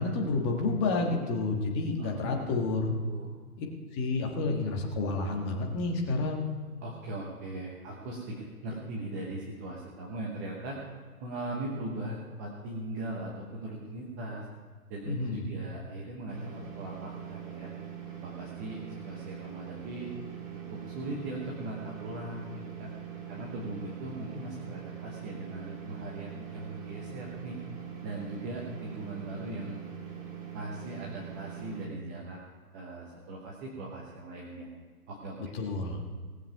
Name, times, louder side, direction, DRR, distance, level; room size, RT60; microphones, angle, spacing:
voice 1, 0.0-2.9 3.6-3.7 3.9-6.4 15.1-15.4 35.5-36.0, left 3 dB, 20° left, 2 dB, 1.5 m, -30 dB
voice 2, 2.0-2.4 3.0-3.3 6.8-10.8 11.2-14.4 14.9-17.7 18.2-20.1 20.7-22.9 23.3-27.6 28.0-29.9 30.5-32.4 32.7-34.7 35.1-35.4, right 1 dB, 10° right, -3 dB, 0.8 m, -39 dB
sound 1, 16.3-31.9, right 8 dB, 35° right, 2.3 m, -42 dB
18.5 x 7.3 x 5.8 m, 1.5 s
figure-of-eight pair, 145°, 46 cm